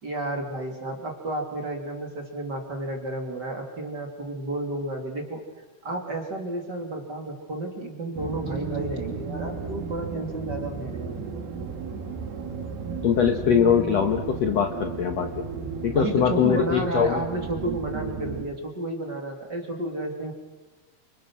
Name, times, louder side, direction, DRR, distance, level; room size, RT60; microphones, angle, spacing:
voice 1, 0.0-5.4 5.8-11.2 15.9-20.3, right 2 dB, 30° right, 2 dB, 3.1 m, -31 dB
sound 1, 8.2-18.5, right 5 dB, 80° right, 4.4 m, -34 dB
voice 2, 13.0-15.4 15.8-17.2, left 8 dB, 60° left, 5 dB, 1.8 m, -22 dB
29.5 x 27.0 x 6.3 m, 1.1 s
omnidirectional pair, 4.4 m